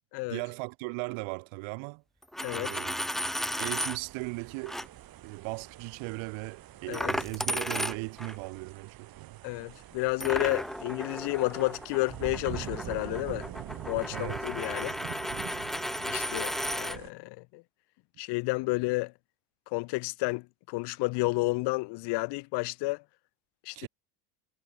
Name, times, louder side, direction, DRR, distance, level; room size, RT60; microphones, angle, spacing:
voice 1, 0.3-2.0 2.5-3.0 3.6-4.8 5.2-9.4 14.1-14.4 23.7-23.9, right 30 dB, 75° right, 3.0 m, -38 dB
Coin (dropping), 2.2-4.0 4.7-4.9 6.9-8.4 10.2-17.0, equal, ahead, 0.4 m, -34 dB
voice 2, 2.4-2.7 6.9-7.1 9.4-13.5 13.9-15.0 16.0-17.6 18.2-19.1 19.7-23.0 23.7-23.9, left 25 dB, 60° left, 0.7 m, -31 dB
sound 1, 3.8-17.1, right 13 dB, 45° right, 1.8 m, -45 dB
supercardioid pair, 105°, 48 cm